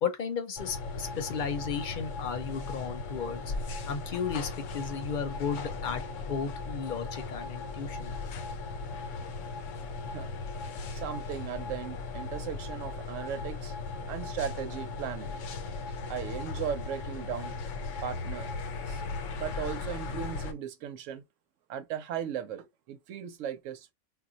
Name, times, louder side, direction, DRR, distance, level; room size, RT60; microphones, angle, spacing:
voice 1, 0.0-3.4 3.9-8.2, left 6 dB, 50° left, 0.7 m, -34 dB
sound 1, 0.6-20.5, left 4 dB, 85° left, 1.0 m, -37 dB
voice 2, 10.9-13.7 14.1-15.4 16.1-17.6 18.0-18.5 18.9-19.0 19.3-21.2 21.7-23.9, right 8 dB, 85° right, 0.9 m, -37 dB
2.4 x 2.1 x 3.8 m
omnidirectional pair, 1.3 m